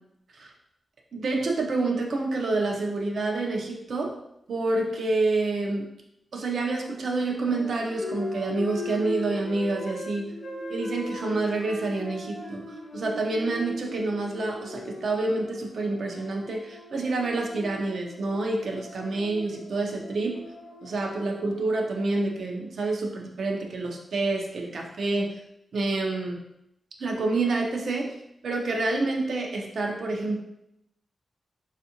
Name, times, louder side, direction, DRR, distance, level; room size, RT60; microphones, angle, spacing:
voice 1, 1.1-4.1 4.5-5.9 6.3-10.3 10.7-12.6 12.9-20.4 20.8-25.3 25.7-26.4 27.0-28.2 28.4-30.4, right 2 dB, 70° right, 1 dB, 0.5 m, -28 dB
Wind instrument woodwind instrument, 7.0-13.8, equal, 20° left, 0.6 m, -41 dB
sound 1, 8.0-22.2, left 2 dB, 90° left, 0.3 m, -40 dB
3.4 x 2.4 x 2.8 m, 0.80 s
wide cardioid pair, 115°, 0 cm